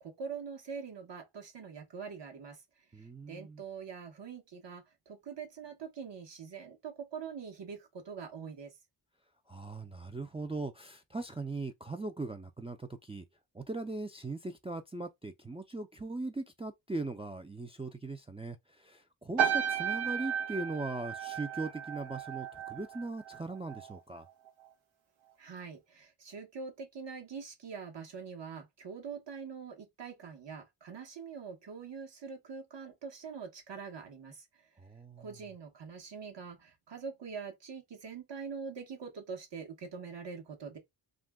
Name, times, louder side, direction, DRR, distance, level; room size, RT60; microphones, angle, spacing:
voice 1, 0.0-8.8 25.4-34.7 35.2-40.8, right 6 dB, 65° right, 1.1 m, -44 dB
voice 2, 2.9-3.6 9.5-13.3 13.5-24.3 34.8-35.4, right 3 dB, 15° right, 0.4 m, -40 dB
sound 1, 19.4-24.0 24.3-24.7, right 8 dB, 90° right, 0.8 m, -34 dB
2.5 x 2.2 x 3.4 m
cardioid pair, 75°, 45 cm